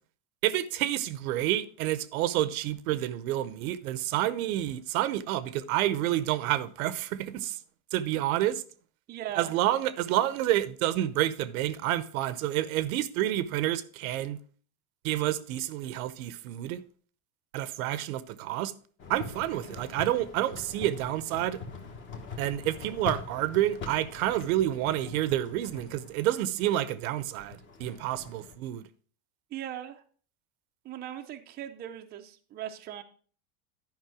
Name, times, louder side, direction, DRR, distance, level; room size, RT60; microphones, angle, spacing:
voice 1, 0.4-7.6 7.9-8.6 9.4-14.4 15.0-16.8 17.5-18.7 19.1-21.6 22.4-28.9, right 13 dB, 70° right, 0.8 m, -29 dB
voice 2, 9.1-9.5 29.5-30.0 30.8-33.0, right 11 dB, 25° right, 0.6 m, -39 dB
sound 1, 19.0-28.6, left 4 dB, 25° left, 1.3 m, -43 dB
10.5 x 5.4 x 4.7 m
supercardioid pair, 145°, 44 cm